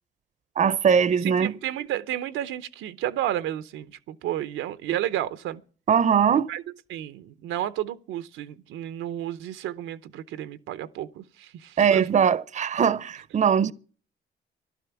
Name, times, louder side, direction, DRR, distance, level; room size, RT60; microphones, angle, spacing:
voice 1, 0.6-1.5 5.9-6.5 11.8-13.7, right 7 dB, 35° right, 0.6 m, -21 dB
voice 2, 1.2-5.6 6.5-6.6 6.9-12.1, right 12 dB, 90° right, 0.7 m, -32 dB
14.0 x 12.0 x 7.0 m
cardioid pair, 90°, 20 cm